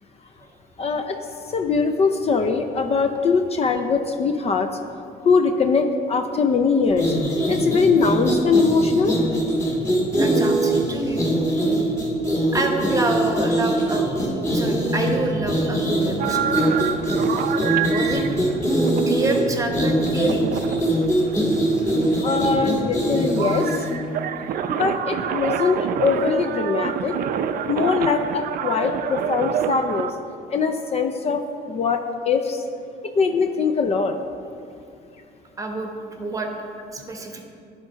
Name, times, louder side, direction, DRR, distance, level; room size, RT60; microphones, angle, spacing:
voice 1, 0.8-1.2 1.5-4.7 5.2-7.1 7.5-9.1 22.2-23.7 24.7-27.1 27.7-30.1 30.5-31.4 31.7-32.0 32.3-32.6 33.2-34.1, left 5 dB, 40° left, 6 dB, 0.5 m, -21 dB
sound 1, 6.9-24.0, right 1 dB, 15° left, 1.9 m, -22 dB
voice 2, 10.1-11.3 12.5-14.3 14.5-16.9 17.9-18.2 19.1-20.4 35.6-36.5 36.9-37.4, right 2 dB, 20° right, 3 dB, 1.0 m, -27 dB
sound 2, 16.2-30.1, right 9 dB, 60° right, 0.4 m, -28 dB
11.0 x 3.7 x 5.1 m, 2.5 s
cardioid pair, 110°, 17 cm